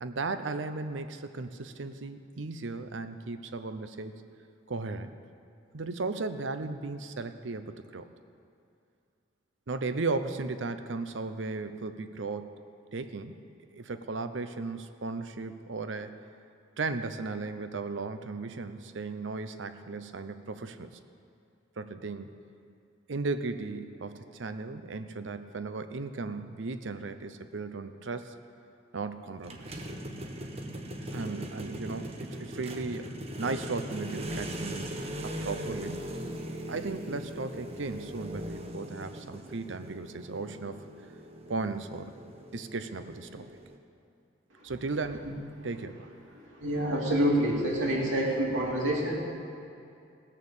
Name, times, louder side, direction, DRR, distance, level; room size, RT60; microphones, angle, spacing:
voice 1, 0.0-4.2 4.7-5.2 5.7-8.1 9.7-12.6 12.9-13.4 13.7-16.2 16.8-20.9 21.8-22.3 23.1-28.3 28.9-29.9 31.1-36.0 36.7-40.8 41.5-42.1 42.5-43.5 44.6-45.3 45.6-46.1, right 3 dB, 75° right, 10 dB, 0.7 m, -36 dB
sound 1, 29.4-43.7, equal, 35° right, 1.0 m, -40 dB
voice 2, 46.6-49.2, right 1 dB, 90° right, -3 dB, 2.8 m, -27 dB
17.5 x 6.7 x 7.2 m, 2.5 s
head